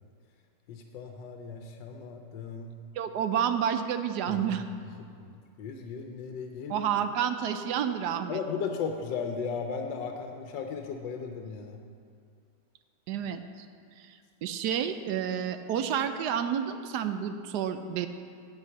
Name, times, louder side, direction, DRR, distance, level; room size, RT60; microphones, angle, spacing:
voice 1, 0.7-2.8 4.3-4.6 5.2-6.9 8.3-11.8, left 5 dB, 85° left, 4 dB, 1.4 m, -36 dB
voice 2, 3.0-4.7 6.7-8.4 13.1-13.4 14.0-14.1 14.4-18.1, right 8 dB, 75° right, 9 dB, 1.1 m, -29 dB
8.3 x 7.9 x 7.0 m, 2.3 s
omnidirectional pair, 1.9 m